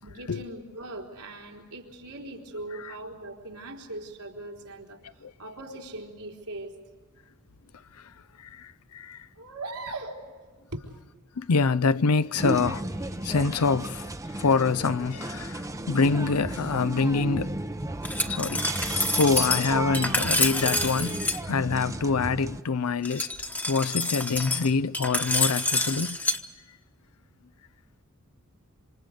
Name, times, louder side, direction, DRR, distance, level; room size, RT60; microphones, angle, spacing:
voice 1, 0.0-5.0 5.4-6.7 9.4-10.2 10.7-10.9, right 2 dB, 90° right, 4.1 m, -39 dB
voice 2, 8.4-9.3 11.4-12.8 13.2-14.1 14.4-17.5 18.2-23.3 23.7-26.2, left 4 dB, 75° left, 0.6 m, -26 dB
sound 1, 12.3-22.6, right 1 dB, 15° right, 0.7 m, -34 dB
Glass, 18.0-21.4 23.0-26.4, left 2 dB, 10° left, 1.2 m, -27 dB
27.5 x 26.5 x 5.3 m
head